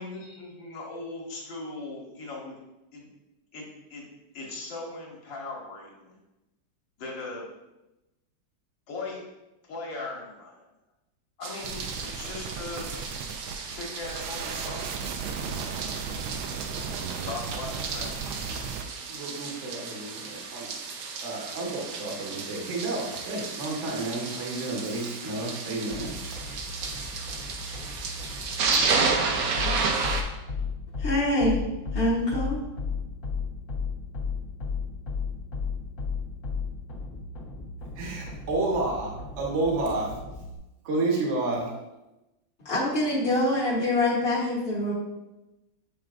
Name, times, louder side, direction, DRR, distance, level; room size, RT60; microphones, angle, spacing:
voice 1, 0.0-2.6 2.9-3.1 3.5-4.1 4.3-6.2 7.0-7.5 8.9-9.2 9.6-10.6 11.4-13.0 13.7-15.0 17.2-18.4, left 3 dB, 70° left, -2 dB, 2.0 m, -39 dB
sound 1, 11.4-30.2, right 4 dB, 65° right, 0.9 m, -32 dB
sound 2, 11.6-18.8, right 6 dB, 85° right, 1.4 m, -36 dB
voice 2, 19.1-20.7 21.2-26.2 38.0-40.2 40.8-41.7, right 2 dB, 45° right, -1 dB, 1.2 m, -30 dB
sound 3, 25.9-40.6, left 5 dB, 50° left, 1.4 m, -35 dB
voice 3, 31.0-31.6 31.9-32.6 42.6-44.9, left 1 dB, 35° left, -6 dB, 1.0 m, -25 dB
8.6 x 4.4 x 2.5 m, 0.99 s
omnidirectional pair, 2.2 m